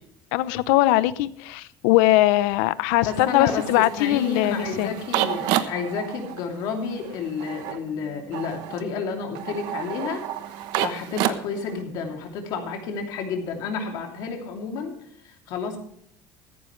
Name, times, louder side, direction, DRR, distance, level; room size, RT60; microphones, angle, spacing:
voice 1, 0.3-5.0, left 16 dB, 90° left, 17 dB, 0.7 m, -21 dB
voice 2, 3.0-10.2 10.5-14.9 15.2-15.8, left 5 dB, 55° left, 3 dB, 2.8 m, -30 dB
sound 1, 3.0-11.8, right 12 dB, 60° right, 1.0 m, -31 dB
15.0 x 14.0 x 3.2 m, 0.66 s
cardioid pair, 175°, 8 cm